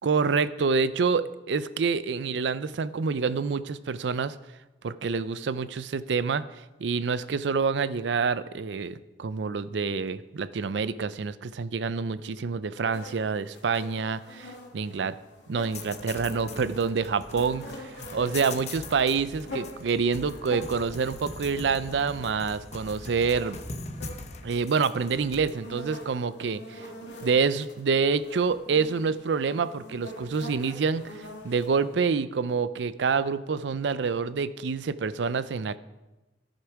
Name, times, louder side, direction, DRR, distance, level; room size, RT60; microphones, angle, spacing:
voice 1, 0.0-4.4 4.8-6.4 6.8-15.2 15.5-23.6 24.4-26.9 27.2-35.8, right 5 dB, 80° right, 15 dB, 0.5 m, -27 dB
sound 1, 12.9-32.0, left 1 dB, 80° left, 2.1 m, -45 dB
sound 2, 15.7-25.5, left 3 dB, 40° left, 0.8 m, -41 dB
14.5 x 6.6 x 4.7 m, 1.1 s
head